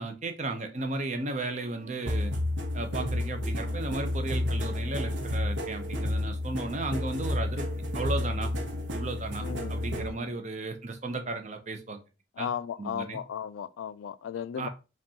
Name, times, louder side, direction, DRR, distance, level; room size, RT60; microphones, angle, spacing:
voice 1, 0.0-2.3 2.7-7.7 7.9-8.5 8.9-12.0 12.4-12.5 12.8-13.2 14.6-14.7, right 2 dB, 35° right, 0.5 m, -34 dB
sound 1, 2.1-10.1, left 1 dB, 70° right, 0.8 m, -31 dB
voice 2, 2.9-3.2 9.4-9.7 10.1-10.4 12.4-14.7, left 8 dB, 90° left, 0.3 m, -36 dB
5.1 x 2.3 x 2.7 m
head